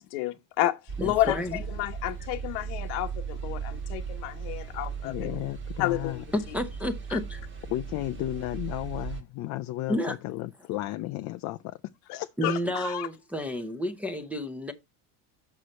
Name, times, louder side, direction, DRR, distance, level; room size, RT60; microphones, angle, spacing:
voice 1, 0.0-5.4 5.8-6.2 7.1-7.2 12.4-13.1, left 14 dB, 80° left, 1.1 m, -31 dB
sound 1, 0.9-9.2, right 6 dB, 25° right, 1.4 m, -37 dB
voice 2, 1.0-1.6 6.3-7.4 9.9-10.2 12.4-14.7, left 1 dB, 5° right, 0.8 m, -30 dB
voice 3, 5.0-6.2 7.7-11.8 12.1-12.6, left 16 dB, 40° left, 0.5 m, -33 dB
8.1 x 6.6 x 4.3 m
cardioid pair, 155°, 45 cm